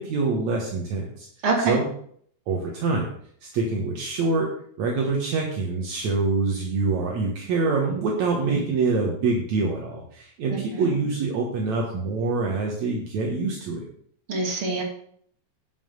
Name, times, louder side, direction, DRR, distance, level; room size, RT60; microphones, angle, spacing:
voice 1, 0.0-1.3 1.6-1.9 2.5-3.1 3.4-4.5 4.8-13.8, right 3 dB, 70° right, -1 dB, 2.6 m, -25 dB
voice 2, 1.4-1.8 10.5-11.0 14.3-14.8, right 3 dB, 45° right, -1 dB, 3.3 m, -25 dB
11.0 x 5.8 x 6.6 m, 0.63 s
omnidirectional pair, 3.5 m